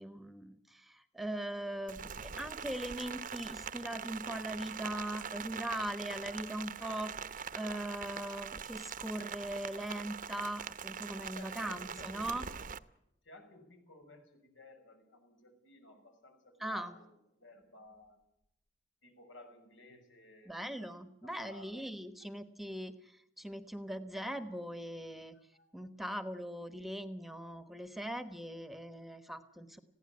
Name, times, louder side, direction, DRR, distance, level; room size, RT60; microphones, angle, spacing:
voice 1, 0.0-12.4 16.6-16.9 20.5-25.4 25.7-29.8, right 1 dB, ahead, 10 dB, 1.1 m, -40 dB
Rain, 1.9-12.8, right 6 dB, 45° right, 0.8 m, -43 dB
voice 2, 11.3-12.6 13.2-17.1 17.4-18.2 19.0-20.6 21.2-21.9 25.3-25.7, left 2 dB, 90° left, 5 dB, 6.3 m, -56 dB
21.0 x 15.5 x 9.6 m, 0.83 s
head